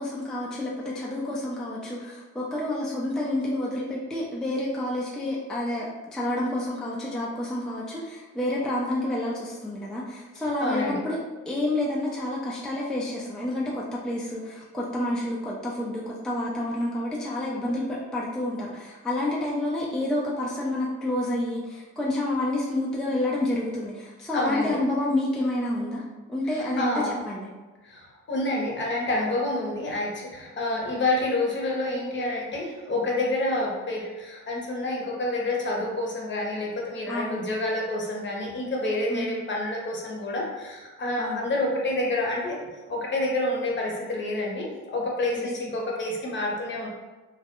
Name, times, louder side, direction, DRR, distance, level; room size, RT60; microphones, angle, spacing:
voice 1, 0.0-11.2 11.5-26.0 26.3-26.9 27.3-27.5 37.1-37.4 39.1-39.3 41.2-41.4 45.4-45.5, left 1 dB, ahead, -5 dB, 0.4 m, -29 dB
voice 2, 10.6-11.0 24.3-24.8 26.4-27.1 27.8-42.6 42.9-46.9, left 2 dB, 40° left, -2 dB, 0.7 m, -28 dB
2.3 x 2.1 x 2.9 m, 1.2 s
cardioid pair, 90°, 30 cm